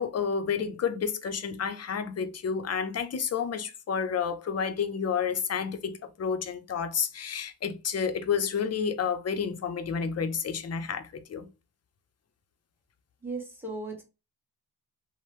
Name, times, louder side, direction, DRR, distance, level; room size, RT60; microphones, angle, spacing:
voice 1, 0.0-11.5, left 6 dB, 40° left, 0.5 m, -30 dB
voice 2, 13.2-14.0, right 3 dB, 5° right, 1.2 m, -36 dB
2.9 x 2.0 x 3.1 m
cardioid pair, 60°, 41 cm